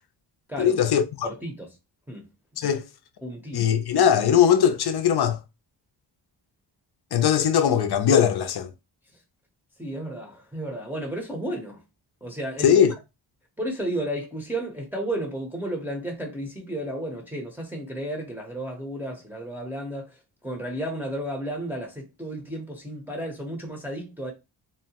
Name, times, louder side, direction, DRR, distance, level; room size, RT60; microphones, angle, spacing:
voice 1, 0.6-1.3 2.6-2.8 3.5-5.4 7.1-8.7 12.6-12.9, left 8 dB, 60° left, 0.6 m, -20 dB
voice 2, 1.2-1.8 2.1-2.3 3.2-3.7 9.8-11.8 12.2-12.8 13.6-24.3, right 1 dB, 5° right, 0.7 m, -33 dB
2.7 x 2.0 x 2.8 m
cardioid pair, 80°, 44 cm